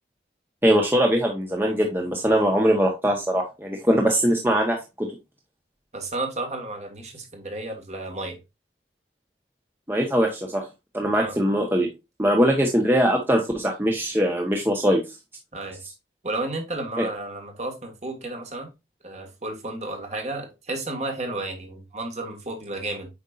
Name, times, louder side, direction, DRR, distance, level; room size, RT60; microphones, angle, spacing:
voice 1, 0.6-5.1 9.9-10.7 10.9-11.9 12.2-15.0 17.0-17.1, equal, 10° right, 1 dB, 1.1 m, -21 dB
voice 2, 5.9-8.4 11.1-11.4 15.5-15.8 16.2-18.7 19.0-23.1, right 2 dB, 40° right, 3 dB, 1.8 m, -32 dB
8.0 x 5.4 x 2.5 m, 0.24 s
head